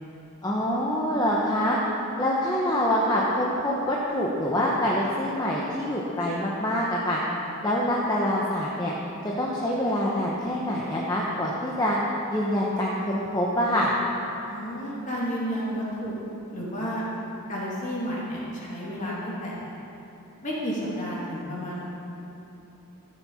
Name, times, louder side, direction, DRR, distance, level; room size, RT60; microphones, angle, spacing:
voice 1, 0.4-1.8 2.2-7.2 7.6-8.9 9.4-12.0 12.3-13.9, left 1 dB, 15° left, -4 dB, 0.9 m, -25 dB
voice 2, 14.4-16.1 16.5-17.0 17.5-19.6 20.4-21.8, equal, 35° left, -6 dB, 2.7 m, -31 dB
14.0 x 7.5 x 5.7 m, 3.0 s
head